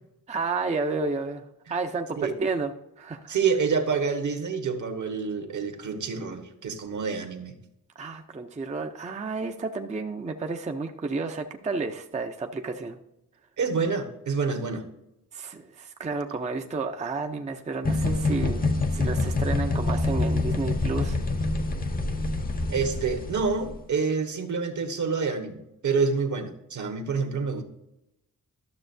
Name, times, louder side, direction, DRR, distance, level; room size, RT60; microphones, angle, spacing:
voice 1, 0.3-2.7 3.0-3.4 8.0-13.0 15.3-21.2, right 4 dB, 20° right, 5 dB, 0.5 m, -31 dB
voice 2, 3.3-7.5 13.6-14.8 22.7-27.6, right 5 dB, 65° right, 5 dB, 1.3 m, -27 dB
sound 1, 17.9-23.7, left 2 dB, 25° left, 0.7 m, -26 dB
12.0 x 6.9 x 2.6 m, 0.87 s
wide cardioid pair, 145°, 33 cm